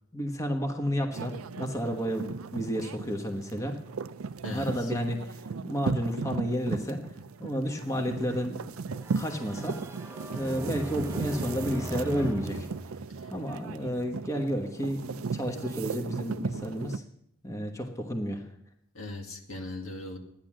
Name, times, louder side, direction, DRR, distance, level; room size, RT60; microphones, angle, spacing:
voice 1, 0.1-3.7 4.5-7.0 7.4-9.8 10.3-12.7 13.3-17.0 17.4-18.5, equal, 15° left, 3 dB, 1.3 m, -31 dB
sound 1, 1.1-17.0, right 5 dB, 70° right, 0.5 m, -36 dB
voice 2, 4.4-4.9 13.2-13.3 18.9-20.2, left 2 dB, 70° left, 2 dB, 2.1 m, -39 dB
sound 2, 9.0-13.8, right 1 dB, 15° right, 0.7 m, -39 dB
13.0 x 10.5 x 7.5 m, 0.78 s
head